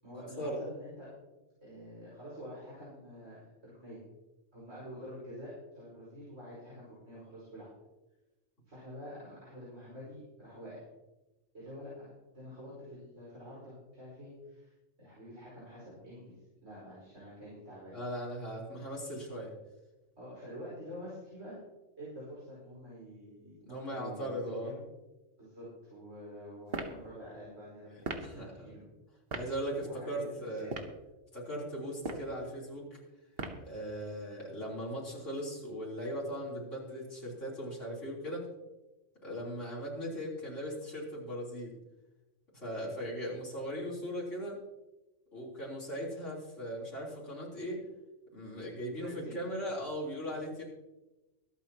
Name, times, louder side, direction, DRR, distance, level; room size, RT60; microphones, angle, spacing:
voice 1, 0.0-1.1 1.6-4.0 4.5-7.7 8.7-10.8 11.5-14.7 15.0-16.4 16.6-18.0 20.2-21.6 22.0-24.9 25.4-28.8 29.8-30.2 30.5-30.7 48.9-49.4, equal, 85° right, -7 dB, 5.6 m, -47 dB
voice 2, 17.9-19.5 23.7-24.7 28.2-28.8 29.3-30.8 31.3-33.0 33.6-38.5 39.2-41.8 42.5-44.6 45.3-47.8 48.3-50.6, equal, 80° left, -5 dB, 4.2 m, -38 dB
sound 1, 26.7-27.0 28.0-28.3 29.3-29.5 30.6-31.0 31.9-32.3 33.4-33.7, right 3 dB, 55° right, 1.3 m, -37 dB
24.0 x 8.9 x 3.0 m, 1.1 s
omnidirectional pair, 1.2 m